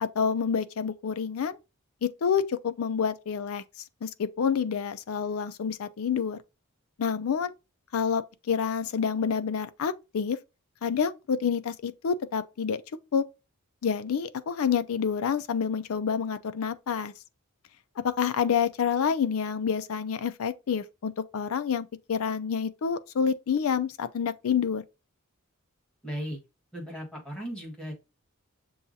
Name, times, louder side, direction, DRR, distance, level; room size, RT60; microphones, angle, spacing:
voice 1, 0.0-1.6 2.0-3.6 4.0-6.4 7.0-7.5 7.9-10.4 10.8-12.8 13.1-13.2 13.8-17.1 18.0-24.8, left 7 dB, 75° left, 0.4 m, -28 dB
voice 2, 26.0-26.4 26.7-27.9, equal, 5° left, 1.5 m, -36 dB
6.9 x 2.3 x 2.6 m
head